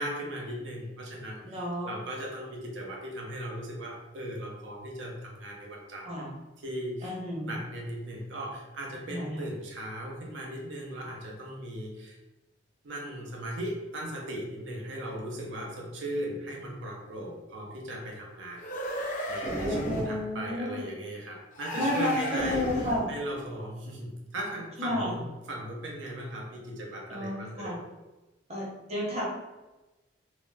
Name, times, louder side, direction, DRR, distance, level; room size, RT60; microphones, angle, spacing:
voice 1, 0.0-6.1 6.6-7.1 7.4-12.2 12.8-18.7 19.3-22.6 23.1-27.8, right 1 dB, 80° right, -1 dB, 0.6 m, -38 dB
voice 2, 1.4-1.9 6.1-6.3 7.0-7.6 9.1-9.4 19.6-20.8 21.7-23.1 24.8-25.1 27.1-27.7 28.5-29.3, left 1 dB, 35° right, -5 dB, 0.9 m, -31 dB
sound 1, 18.6-20.2 21.6-23.2, equal, 45° left, 0.5 m, -33 dB
2.8 x 2.0 x 3.4 m, 1.1 s
head